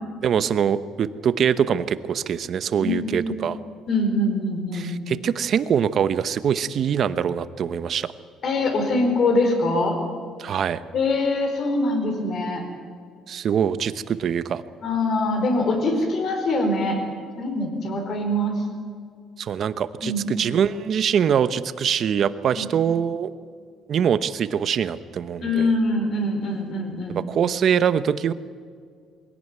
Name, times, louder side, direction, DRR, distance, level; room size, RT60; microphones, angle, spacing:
voice 1, 0.2-3.6 4.7-8.1 10.4-10.8 13.3-14.6 19.4-23.3 23.9-25.7 27.3-28.3, right 8 dB, 45° right, 14 dB, 0.9 m, -23 dB
voice 2, 2.8-3.3 3.9-4.9 8.4-10.0 10.9-12.6 14.8-17.0 17.4-18.6 20.0-20.3 22.5-22.9 25.4-27.2, left 2 dB, 45° left, 5 dB, 4.4 m, -23 dB
21.5 x 16.5 x 9.5 m, 2.1 s
cardioid pair, 145°, 0 cm